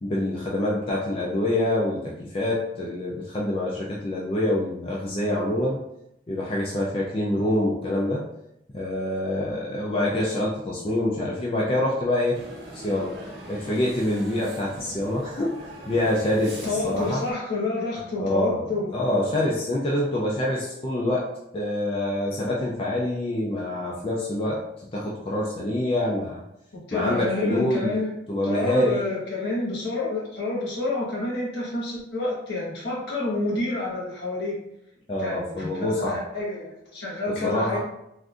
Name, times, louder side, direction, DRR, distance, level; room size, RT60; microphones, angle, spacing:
voice 1, 0.0-5.8 6.3-8.2 8.7-12.4 12.7-13.2 13.5-17.2 18.2-21.3 21.5-26.4 26.9-27.9 28.3-29.0 35.1-36.2 37.3-37.8, left 1 dB, 30° left, -4 dB, 0.4 m, -26 dB
sound 1, 12.3-17.3, right 1 dB, 65° right, 0.7 m, -42 dB
voice 2, 16.6-19.1 26.7-28.1 28.4-34.6 35.2-37.8, left 2 dB, 70° left, -5 dB, 1.3 m, -28 dB
3.4 x 2.6 x 2.5 m, 0.82 s
head